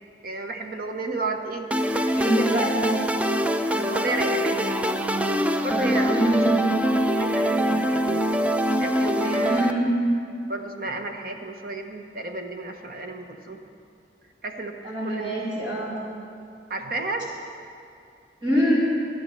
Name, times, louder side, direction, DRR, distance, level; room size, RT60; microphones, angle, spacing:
voice 1, 0.2-1.7 2.1-2.7 3.8-4.7 5.6-6.4 7.2-8.3 8.8-9.7 10.5-13.6 14.4-14.8 15.0-15.4 16.7-17.3, right 2 dB, 55° right, 4 dB, 1.1 m, -32 dB
sound 1, 1.7-9.7, equal, 10° right, 0.4 m, -23 dB
voice 2, 2.2-2.8 6.0-6.7 9.4-10.0 14.8-15.9 18.4-18.8, right 1 dB, 25° right, -10 dB, 4.1 m, -24 dB
13.0 x 10.0 x 6.7 m, 2.4 s
head